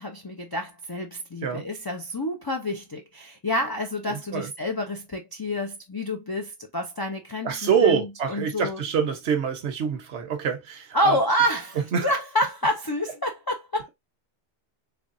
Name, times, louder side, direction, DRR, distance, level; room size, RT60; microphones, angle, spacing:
voice 1, 0.0-8.8 10.9-13.9, equal, 30° left, 0.5 m, -28 dB
voice 2, 4.1-4.5 7.4-11.2 11.9-12.1, right 7 dB, 80° right, 1.2 m, -25 dB
3.5 x 3.4 x 2.5 m
omnidirectional pair, 1.1 m